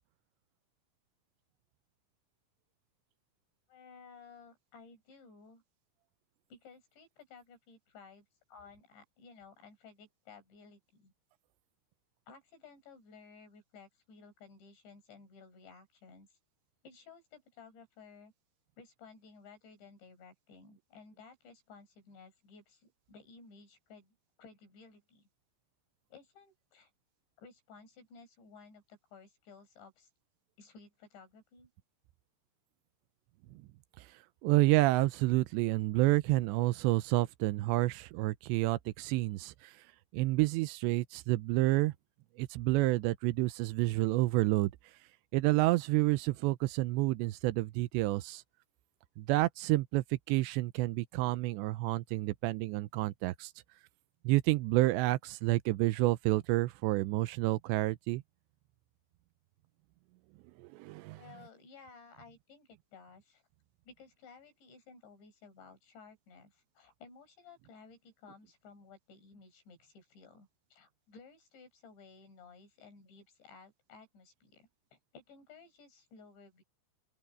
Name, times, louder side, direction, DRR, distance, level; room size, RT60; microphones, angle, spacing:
voice 1, 3.7-5.6 6.5-11.1 12.3-16.4 16.8-18.3 18.8-25.3 26.1-26.9 27.4-30.1 30.6-31.7 61.1-63.4 63.9-76.6, left 5 dB, 80° left, 8.7 m, -56 dB
voice 2, 34.4-39.7 40.1-41.9 42.4-44.7 45.3-48.4 49.2-53.5 54.2-58.2 60.6-61.2, right 19 dB, 85° right, 2.9 m, -29 dB
open air
omnidirectional pair, 5.1 m